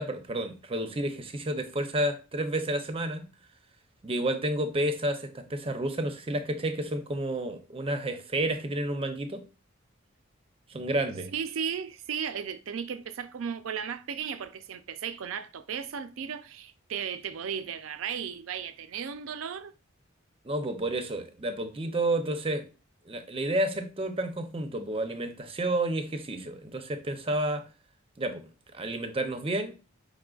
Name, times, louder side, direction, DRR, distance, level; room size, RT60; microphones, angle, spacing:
voice 1, 0.0-3.3 4.0-9.4 10.7-11.3 20.4-22.7 23.1-27.6 28.2-28.4 28.7-29.7, right 1 dB, 30° right, 0.6 m, -30 dB
voice 2, 11.3-19.7, right 7 dB, 70° right, 0.4 m, -35 dB
5.3 x 3.8 x 2.4 m
head